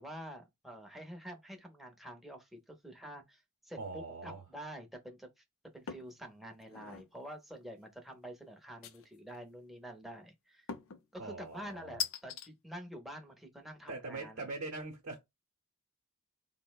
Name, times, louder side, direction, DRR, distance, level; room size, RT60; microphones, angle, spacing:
voice 1, 0.0-5.4 5.7-10.7 11.1-14.5, equal, ahead, 0.6 m, -48 dB
voice 2, 3.8-4.4 11.2-12.0 13.9-15.2, right 3 dB, 70° right, 0.7 m, -42 dB
sound 1, 5.9-6.2 6.6-7.1 8.8-9.4 10.7-11.0 12.0-12.5, left 7 dB, 60° left, 0.4 m, -40 dB
3.7 x 2.0 x 2.2 m
head